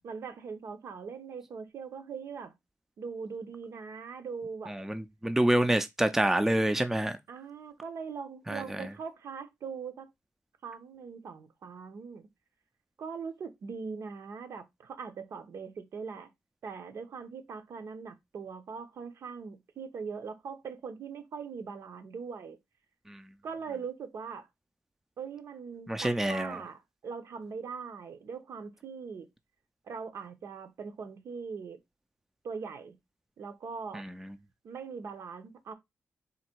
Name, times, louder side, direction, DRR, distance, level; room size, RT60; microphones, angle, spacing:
voice 1, 0.0-2.5 3.0-4.7 7.3-10.1 10.6-12.3 13.0-16.3 16.6-22.6 23.4-24.5 25.2-29.3 29.9-31.8 32.4-33.0 33.4-34.0 34.6-35.7, right 5 dB, 70° right, 0.8 m, -41 dB
voice 2, 4.7-7.2 8.5-8.8 23.1-23.2 25.9-26.6 33.9-34.1, right 1 dB, 5° right, 0.4 m, -27 dB
3.9 x 2.6 x 4.4 m
wide cardioid pair, 150°, 5 cm